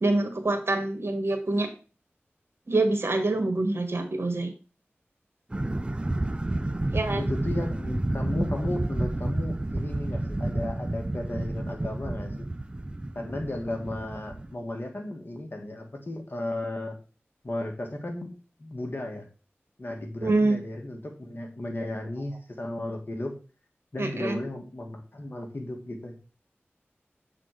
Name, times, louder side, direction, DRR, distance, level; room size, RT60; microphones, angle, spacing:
voice 1, 0.0-1.7 2.7-4.5 6.9-7.3 20.2-20.6 24.0-24.4, right 2 dB, 65° right, 6 dB, 1.4 m, -25 dB
sound 1, 5.5-14.5, right 1 dB, 20° right, 0.4 m, -30 dB
voice 2, 7.2-12.5 13.1-16.9 17.4-18.3 18.6-19.3 19.8-23.3 23.9-26.3, left 1 dB, 50° left, 2 dB, 1.6 m, -34 dB
7.4 x 3.9 x 4.7 m, 0.36 s
wide cardioid pair, 60°, 4 cm